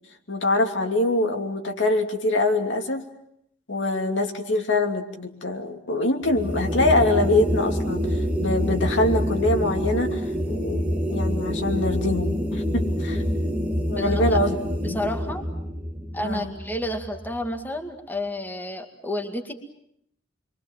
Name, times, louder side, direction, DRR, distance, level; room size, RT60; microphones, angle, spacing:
voice 1, 0.3-3.0 3.7-13.2 13.9-14.6 14.8-15.0 16.2-16.5, left 2 dB, 65° left, 3 dB, 2.9 m, -24 dB
sound 1, 6.2-17.6, equal, 5° right, 2.0 m, -26 dB
voice 2, 13.9-14.4 14.8-15.4 16.1-19.5, left 1 dB, 10° left, 4 dB, 2.2 m, -30 dB
28.5 x 23.5 x 7.5 m, 0.72 s
head